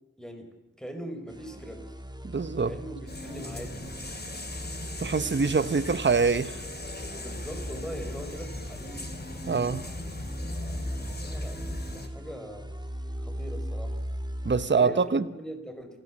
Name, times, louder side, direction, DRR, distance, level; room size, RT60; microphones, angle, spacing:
voice 1, 0.2-1.9 2.6-3.0 3.2-3.9 7.2-9.1 10.6-10.8 11.1-12.8 13.2-14.0 14.7-16.0, equal, ahead, 5.0 m, -41 dB
sound 1, 1.3-14.7, equal, 15° right, 2.1 m, -39 dB
voice 2, 2.2-2.7 5.0-6.6 9.4-9.9 14.4-15.3, right 4 dB, 35° right, 0.9 m, -25 dB
sound 2, 3.1-12.1, left 2 dB, 30° left, 2.7 m, -38 dB
28.0 x 15.5 x 7.5 m
wide cardioid pair, 45°, 31 cm